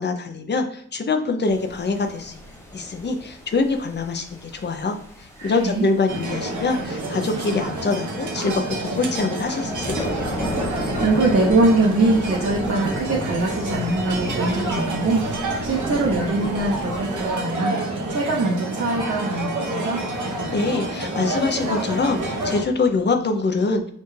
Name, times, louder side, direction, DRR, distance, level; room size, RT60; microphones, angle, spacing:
voice 1, 0.0-2.4 2.7-5.0 5.4-10.3 20.5-23.9, left 3 dB, 35° left, 5 dB, 0.5 m, -24 dB
sound 1, 1.4-17.3, equal, 10° left, 0.8 m, -35 dB
voice 2, 5.4-5.9 10.7-17.8 18.1-20.0, right 2 dB, 50° right, -2 dB, 0.7 m, -22 dB
sound 2, 6.1-22.6, right 2 dB, 90° right, 0.9 m, -28 dB
6.5 x 2.3 x 3.1 m, 0.66 s
wide cardioid pair, 170°, 29 cm